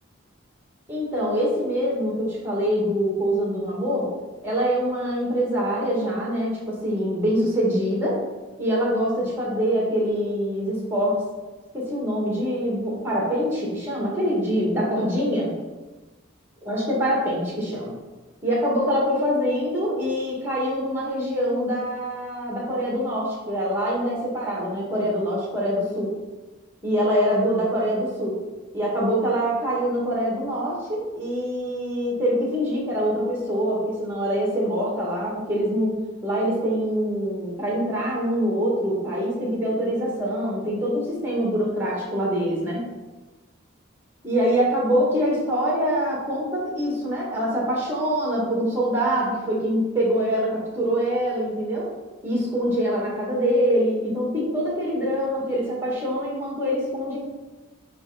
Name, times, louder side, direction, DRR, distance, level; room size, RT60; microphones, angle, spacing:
voice 1, 0.9-4.1 4.4-8.2 8.6-11.2 11.7-15.5 16.6-17.9 18.4-26.1 26.8-28.4 28.7-36.0 36.2-42.8 44.2-51.9 52.2-57.2, equal, 10° right, -5 dB, 1.8 m, -24 dB
8.7 x 3.5 x 4.1 m, 1.2 s
head